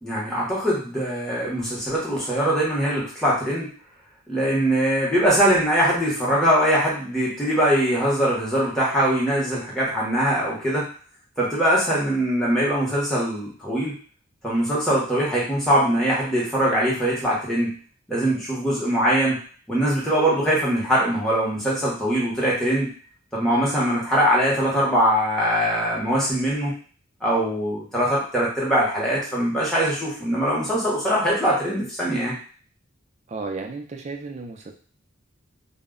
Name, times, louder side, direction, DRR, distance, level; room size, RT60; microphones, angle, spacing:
voice 1, 0.0-3.7 4.3-10.8 11.4-13.9 14.4-17.7 18.1-19.4 19.7-22.9 23.3-26.7 27.2-32.3, equal, 5° left, -7 dB, 0.8 m, -22 dB
voice 2, 33.3-34.7, right 3 dB, 35° right, 3 dB, 0.3 m, -33 dB
2.0 x 2.0 x 3.5 m, 0.42 s
head